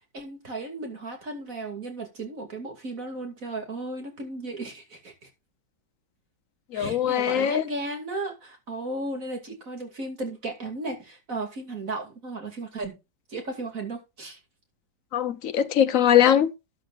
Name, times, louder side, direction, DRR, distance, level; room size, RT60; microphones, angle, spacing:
voice 1, 0.1-5.3 6.7-13.0 13.3-14.4, right 2 dB, 45° right, 3.0 m, -35 dB
voice 2, 6.7-7.6 15.1-16.5, left 10 dB, 55° left, 1.0 m, -21 dB
13.0 x 10.5 x 2.5 m
omnidirectional pair, 1.9 m